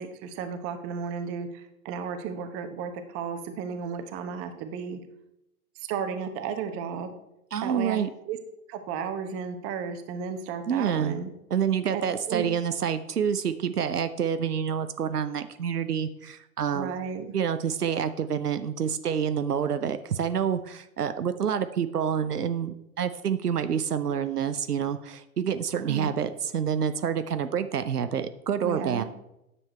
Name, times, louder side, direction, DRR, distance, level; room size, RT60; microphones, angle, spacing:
voice 1, 0.0-5.0 5.8-7.1 7.6-8.0 8.2-8.4 8.7-11.3 11.9-12.0 12.3-12.5 16.7-17.3 25.9-26.1 28.6-29.0, right 6 dB, 30° right, 7 dB, 1.1 m, -33 dB
voice 2, 7.5-8.1 10.7-11.2 11.5-16.9 17.3-29.0, right 8 dB, 85° right, 10 dB, 0.7 m, -28 dB
9.8 x 7.2 x 4.3 m, 0.86 s
figure-of-eight pair, 110°, 45 cm